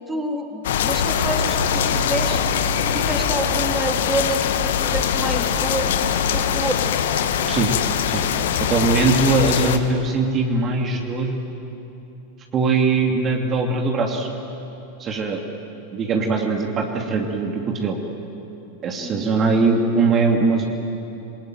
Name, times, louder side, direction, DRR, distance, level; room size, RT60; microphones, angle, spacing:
voice 1, 0.1-2.6 2.9-5.9 6.3-7.0 19.0-19.3, right 1 dB, 10° right, 2 dB, 3.1 m, -28 dB
sound 1, 0.6-9.8, left 8 dB, 60° left, 1.5 m, -22 dB
voice 2, 8.7-11.3 12.5-14.3 15.0-15.4 15.9-18.0 18.8-20.6, right 3 dB, 25° right, 1 dB, 2.7 m, -21 dB
26.5 x 22.5 x 9.3 m, 3.0 s
figure-of-eight pair, 90°, 0 cm